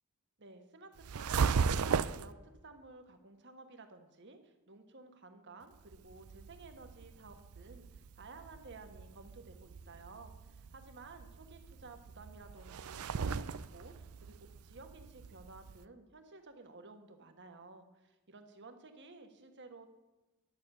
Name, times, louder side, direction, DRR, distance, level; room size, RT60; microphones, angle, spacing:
voice 1, 0.4-2.3 2.6-19.9, right 3 dB, 50° right, 7 dB, 1.4 m, -54 dB
sound 1, 1.0-2.3 5.7-15.8, right 5 dB, 75° right, 0.5 m, -37 dB
11.5 x 6.6 x 8.3 m, 1.1 s
head